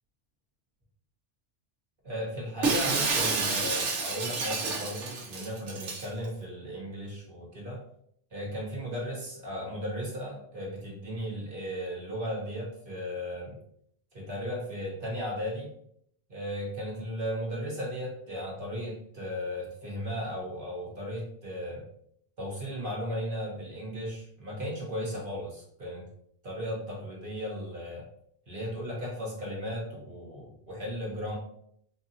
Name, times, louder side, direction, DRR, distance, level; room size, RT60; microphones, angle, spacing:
voice 1, 2.0-7.8 8.3-13.6 14.1-15.7 16.3-21.8 22.4-26.1 26.4-28.1 28.5-31.4, equal, 50° right, -4 dB, 1.4 m, -36 dB
Shatter, 2.6-6.1, right 4 dB, 80° right, 1.1 m, -29 dB
4.5 x 2.7 x 2.7 m, 0.70 s
omnidirectional pair, 1.2 m